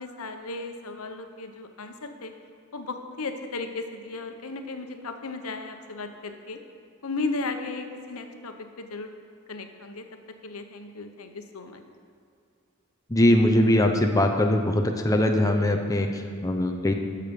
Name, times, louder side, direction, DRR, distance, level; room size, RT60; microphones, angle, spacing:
voice 1, 0.0-2.3 2.7-6.6 7.0-9.1 9.5-10.1 10.4-11.8, left 3 dB, 85° left, 6 dB, 0.9 m, -35 dB
voice 2, 13.1-16.9, left 1 dB, 15° left, 3 dB, 0.7 m, -21 dB
13.5 x 6.7 x 5.3 m, 2.4 s
head